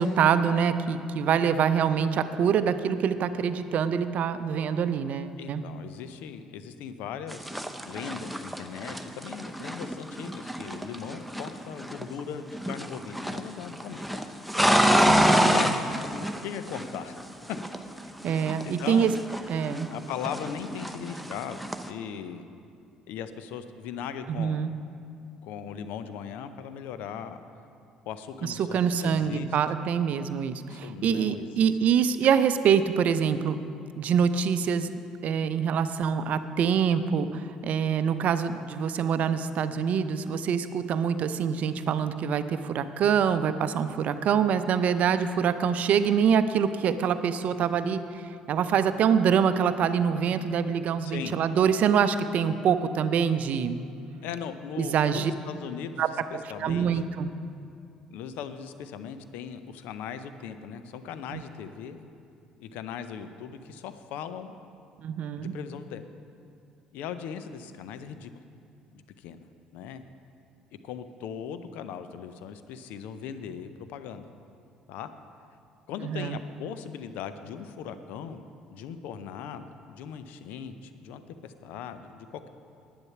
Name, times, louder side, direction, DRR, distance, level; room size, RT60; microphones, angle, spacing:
voice 1, 0.0-5.6 15.1-15.8 18.2-19.1 19.5-19.9 24.3-24.7 28.4-33.6 34.0-34.9 35.2-48.2 48.5-53.8 54.8-55.3 56.0-56.1 56.3-57.3 61.3-61.4 65.0-65.5 76.0-76.4, right 7 dB, 50° right, 11 dB, 0.6 m, -25 dB
voice 2, 5.4-14.2 15.0-15.9 16.2-17.2 18.7-19.1 19.9-22.4 23.1-24.6 25.4-27.4 28.1-29.6 30.7-31.7 51.0-51.4 54.2-57.0 58.1-62.0 62.6-64.6 65.4-66.0 66.9-68.3 68.9-69.5 69.7-70.0 70.8-74.2 74.9-75.1 75.9-78.4 78.7-82.5, left 8 dB, 65° left, 11 dB, 0.6 m, -39 dB
sound 1, 7.3-12.2 12.5-13.5 13.7-17.2 17.5-19.9 20.2-21.9, equal, ahead, 0.8 m, -27 dB
10.5 x 8.9 x 5.8 m, 2.5 s
figure-of-eight pair, 55°, 3 cm